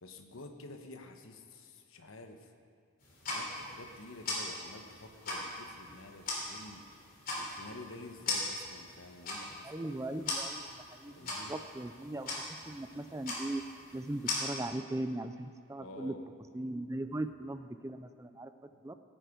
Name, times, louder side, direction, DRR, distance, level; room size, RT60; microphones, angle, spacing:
voice 1, 0.0-2.5 3.2-6.8 7.4-9.9 11.1-11.5 15.8-16.2 17.0-17.3 18.7-18.8, left 2 dB, 80° left, 6 dB, 1.2 m, -50 dB
sound 1, 3.0-14.4, left 2 dB, 45° left, 3.3 m, -40 dB
voice 2, 9.6-13.6 13.9-16.1 16.5-18.5 18.8-18.9, right 1 dB, 15° right, 10 dB, 0.4 m, -39 dB
17.0 x 9.1 x 5.2 m, 2.4 s
head